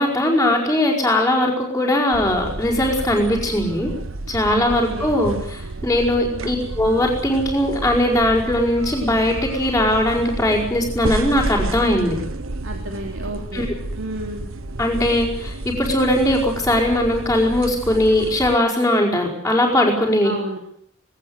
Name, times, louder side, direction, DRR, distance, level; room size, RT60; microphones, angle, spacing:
voice 1, 0.0-3.9 4.3-12.2 13.5-13.7 14.8-20.3, left 1 dB, 10° left, -8 dB, 5.2 m, -19 dB
sound 1, 2.1-18.6, right 2 dB, 85° right, 1.3 m, -31 dB
voice 2, 4.5-5.1 6.2-6.7 12.6-14.5 20.2-20.6, right 1 dB, 65° right, 2 dB, 3.4 m, -32 dB
20.0 x 19.0 x 9.6 m, 0.68 s
head